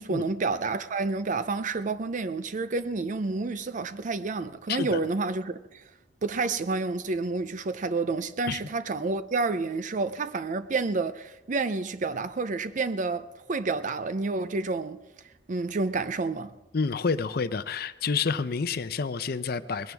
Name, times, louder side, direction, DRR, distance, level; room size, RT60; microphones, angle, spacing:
voice 1, 0.0-5.8 6.2-15.0 15.5-16.6, right 3 dB, 45° right, 0.5 m, -29 dB
voice 2, 4.7-5.0 8.5-8.6 16.7-19.9, left 5 dB, 60° left, 0.6 m, -29 dB
20.5 x 15.5 x 3.5 m
head